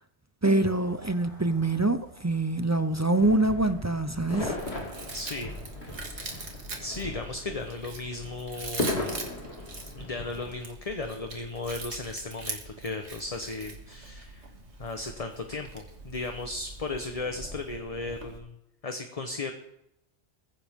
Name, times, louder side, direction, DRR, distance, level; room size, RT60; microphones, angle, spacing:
voice 1, 0.4-4.5, right 2 dB, 20° right, 0.5 m, -25 dB
sound 1, 0.7-8.5, right 1 dB, 50° right, 4.8 m, -55 dB
sound 2, 3.1-10.5, left 2 dB, 65° left, 2.6 m, -37 dB
Chewing mastication, 4.3-18.4, right 3 dB, 80° right, 2.2 m, -42 dB
voice 2, 5.1-5.5 6.1-9.1 10.0-14.5 14.8-18.6 18.8-19.5, left 3 dB, 35° left, 1.1 m, -36 dB
22.0 x 10.0 x 3.7 m
omnidirectional pair, 1.1 m